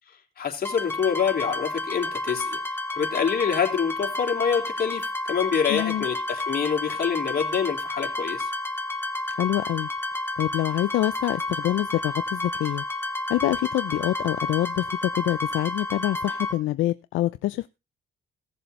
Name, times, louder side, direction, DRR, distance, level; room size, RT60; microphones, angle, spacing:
voice 1, 0.4-2.6 3.0-8.5, left 7 dB, 50° left, 3.5 m, -26 dB
sound 1, 0.6-16.5, left 2 dB, 10° left, 1.5 m, -31 dB
voice 2, 5.7-6.0 9.3-9.9 10.4-12.8 13.3-17.7, left 15 dB, 80° left, 0.5 m, -26 dB
17.0 x 6.9 x 4.2 m
cardioid pair, 90°, 20 cm